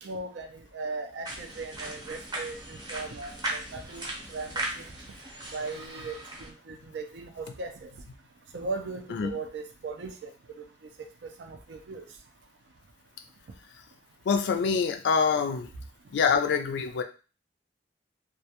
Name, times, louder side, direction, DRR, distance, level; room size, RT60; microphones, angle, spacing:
voice 1, 0.0-4.8 5.5-7.9 8.5-10.3 11.4-12.0, right 3 dB, 75° right, 6 dB, 0.4 m, -38 dB
sound 1, 1.2-6.5, right 2 dB, 25° right, 0.6 m, -38 dB
voice 2, 14.3-15.7 16.1-17.0, left 5 dB, 70° left, 7 dB, 0.3 m, -25 dB
2.3 x 2.1 x 2.8 m, 0.35 s
head